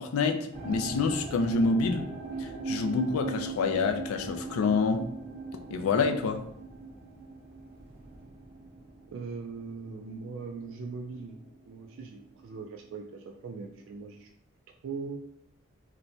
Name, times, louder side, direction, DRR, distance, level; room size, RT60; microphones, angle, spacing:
voice 1, 0.0-2.1 2.4-5.1 5.7-6.4, left 4 dB, 85° left, 6 dB, 0.4 m, -27 dB
sound 1, 0.5-11.7 11.9-12.6 13.2-13.3, right 4 dB, 30° right, 0.9 m, -40 dB
voice 2, 9.1-11.4 11.7-14.3 14.8-15.2, right 4 dB, 60° right, 2 dB, 0.3 m, -40 dB
4.3 x 2.1 x 2.7 m, 0.70 s
head